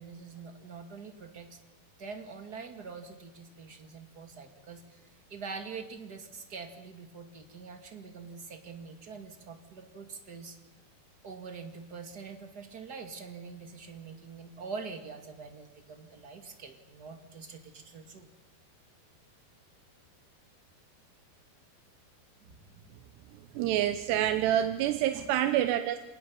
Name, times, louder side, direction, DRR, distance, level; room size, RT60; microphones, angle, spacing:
voice 1, 0.0-1.6 2.0-10.6 11.2-18.3 22.4-22.8 24.9-25.3, right 5 dB, 35° right, 5 dB, 1.8 m, -45 dB
voice 2, 23.6-26.0, right 12 dB, 90° right, 8 dB, 3.1 m, -27 dB
27.0 x 19.0 x 7.2 m, 1.1 s
omnidirectional pair, 4.7 m